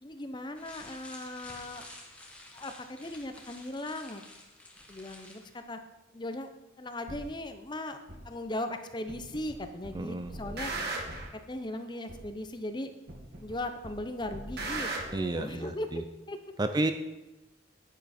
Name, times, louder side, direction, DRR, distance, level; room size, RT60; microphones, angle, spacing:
voice 1, 0.0-1.9 2.5-4.2 4.9-5.8 6.1-6.5 6.8-8.0 8.2-11.1 11.3-12.9 13.4-16.4, left 1 dB, 20° left, 7 dB, 0.7 m, -38 dB
sound 1, 0.6-5.6, left 1 dB, 5° left, 1.3 m, -50 dB
sound 2, 7.1-7.2 8.1-8.2 9.1-9.5 9.8-11.3 12.1-12.2 13.1-13.5 13.8-15.0, right 2 dB, 55° right, 1.9 m, -37 dB
voice 2, 10.0-10.3 15.1-16.0 16.6-16.9, right 2 dB, 20° right, 9 dB, 0.4 m, -31 dB
10.5 x 9.3 x 4.3 m, 1.0 s
head